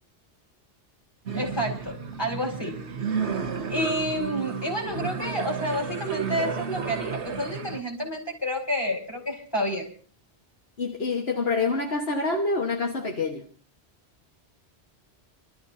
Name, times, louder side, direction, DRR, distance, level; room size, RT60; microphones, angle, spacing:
voice 1, 1.3-2.7 3.7-9.8, equal, 20° left, 5.1 m, -29 dB
sound 1, 1.3-7.8, right 6 dB, 90° right, 1.4 m, -32 dB
voice 2, 10.8-13.5, left 3 dB, 65° left, 1.7 m, -26 dB
28.0 x 13.5 x 2.8 m
omnidirectional pair, 1.1 m